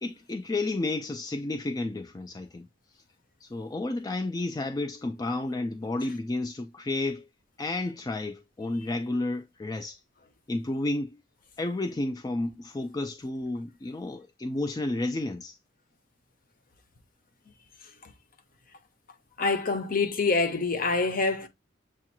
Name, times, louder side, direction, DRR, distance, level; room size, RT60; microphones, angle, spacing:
voice 1, 0.0-2.7 3.4-7.3 7.6-10.0 10.5-11.2 11.6-15.6, left 2 dB, 20° left, 0.3 m, -31 dB
voice 2, 19.4-21.5, left 3 dB, 50° left, 0.7 m, -26 dB
7.2 x 2.4 x 2.9 m
head